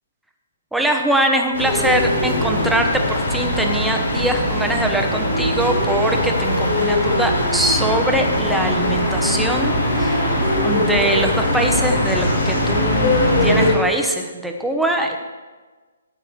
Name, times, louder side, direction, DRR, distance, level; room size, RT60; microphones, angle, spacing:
voice 1, 0.7-10.2 10.6-15.2, right 1 dB, ahead, 2 dB, 0.9 m, -22 dB
sound 1, 1.5-13.7, left 1 dB, 70° left, 2.9 m, -20 dB
13.5 x 8.7 x 3.3 m, 1.3 s
figure-of-eight pair, 135°, 0 cm